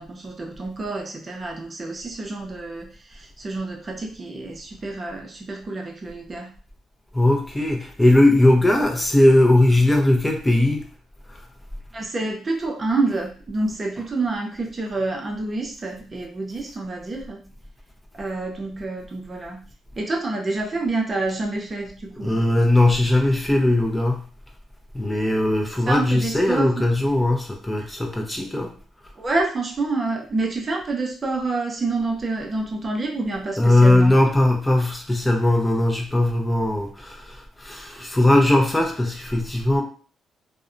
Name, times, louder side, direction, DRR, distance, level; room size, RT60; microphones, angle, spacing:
voice 1, 0.0-6.5 11.9-17.5 18.2-19.6 20.0-22.4 25.9-26.9 27.8-27.9 29.2-34.2, right 3 dB, 30° right, 1 dB, 0.6 m, -28 dB
voice 2, 7.1-10.9 22.2-24.2 24.9-28.7 33.6-39.8, left 1 dB, 10° left, 1 dB, 0.5 m, -19 dB
2.6 x 2.1 x 2.5 m, 0.42 s
cardioid pair, 90°, 0 cm